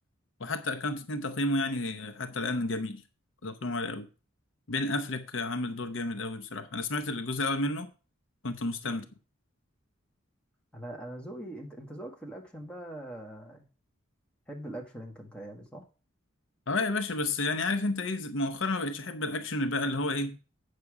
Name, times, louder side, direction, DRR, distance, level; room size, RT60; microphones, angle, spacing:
voice 1, 0.4-3.0 3.4-4.1 4.7-7.9 8.4-9.0 16.7-20.4, left 2 dB, 60° left, 0.8 m, -31 dB
voice 2, 10.7-13.7 14.5-15.8, right 1 dB, 5° left, 1.7 m, -42 dB
8.4 x 6.6 x 4.8 m
head